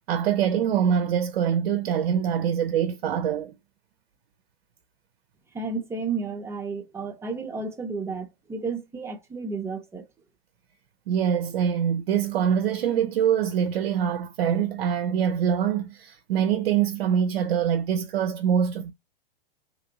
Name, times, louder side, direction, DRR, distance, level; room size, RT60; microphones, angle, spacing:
voice 1, 0.1-3.5 11.1-18.9, right 8 dB, 60° right, 0.5 m, -24 dB
voice 2, 5.5-10.1, right 4 dB, 10° right, 0.6 m, -32 dB
2.9 x 2.5 x 2.7 m
hypercardioid pair, 110°, 29 cm